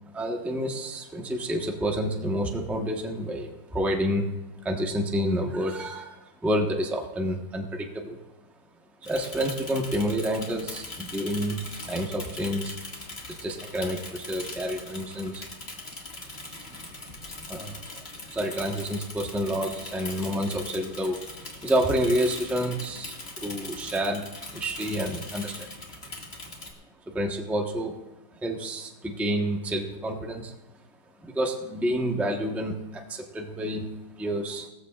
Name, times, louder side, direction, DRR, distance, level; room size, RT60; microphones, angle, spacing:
voice 1, 0.1-4.3 4.6-8.2 9.0-12.8 13.3-15.4 17.5-24.2 24.5-25.7 27.1-27.9 28.3-30.5 31.2-34.7, equal, ahead, 1 dB, 0.9 m, -29 dB
Bicycle / Mechanisms, 9.0-26.7, left 2 dB, 30° left, 2.3 m, -40 dB
20.0 x 15.0 x 2.5 m, 1.1 s
omnidirectional pair, 2.1 m